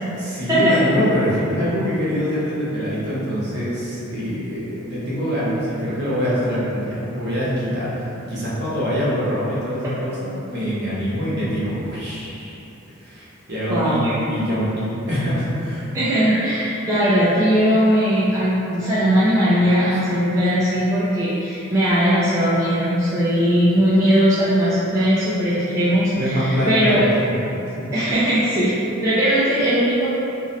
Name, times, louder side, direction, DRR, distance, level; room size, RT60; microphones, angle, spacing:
voice 1, 0.2-12.6 13.0-15.9 26.1-27.3 27.7-27.9, equal, 50° right, -9 dB, 0.8 m, -24 dB
voice 2, 13.7-14.1 15.9-27.0 27.9-28.7 29.0-30.1, equal, 15° right, -12 dB, 0.3 m, -19 dB
2.5 x 2.0 x 3.8 m, 2.9 s
head